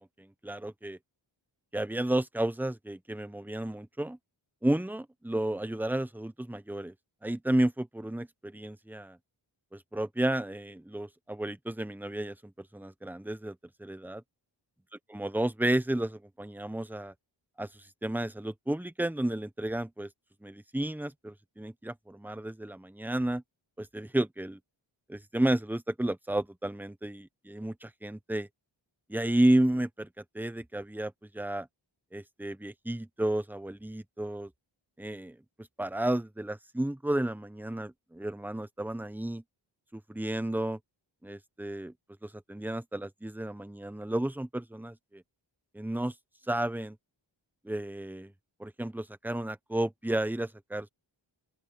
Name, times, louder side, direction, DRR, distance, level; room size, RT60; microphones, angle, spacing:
voice 1, 0.2-1.0 1.7-4.2 4.6-6.9 7.2-9.2 9.7-14.2 15.1-17.1 17.6-17.7 18.0-20.1 20.4-23.4 23.8-24.6 25.1-28.5 29.1-30.1 30.3-31.7 32.1-34.5 35.0-35.4 35.8-39.4 39.9-40.8 41.2-41.9 42.2-45.2 45.7-46.1 46.5-47.0 47.6-48.3 48.6-50.9, right 1 dB, 5° right, 1.0 m, -32 dB
open air
wide cardioid pair, 85°, 47 cm